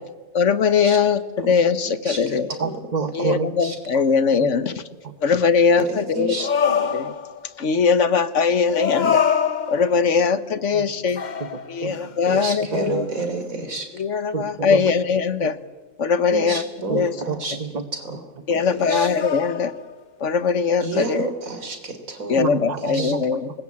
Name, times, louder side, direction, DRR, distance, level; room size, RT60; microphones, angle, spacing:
voice 1, 0.3-2.5 3.1-4.7 5.2-6.5 6.8-7.1 7.6-9.2 9.7-11.2 11.7-13.0 14.0-15.5 16.0-17.1 18.5-19.7 20.2-21.3 22.3-23.4, left 5 dB, 65° left, 13 dB, 1.4 m, -21 dB
voice 2, 2.0-2.7 3.6-3.8 5.8-6.5 12.2-13.9 16.3-17.6 18.1-18.2 18.5-18.6 18.9-19.1 20.8-22.4 22.9-23.1, right 3 dB, 85° right, 7 dB, 3.8 m, -30 dB
voice 3, 2.6-3.5 3.9-4.0 4.4-4.5 5.0-5.1 10.7-10.9 11.4-12.4 12.7-13.1 14.3-14.9 15.4-15.5 16.9-18.2 22.4-23.4, right 4 dB, 30° right, 10 dB, 1.3 m, -29 dB
sound 1, 6.4-7.5 8.7-10.2 11.2-12.2 12.7-12.9 18.8-20.0, left 7 dB, 40° left, 1.0 m, -25 dB
26.0 x 20.5 x 8.7 m, 1.3 s
omnidirectional pair, 1.4 m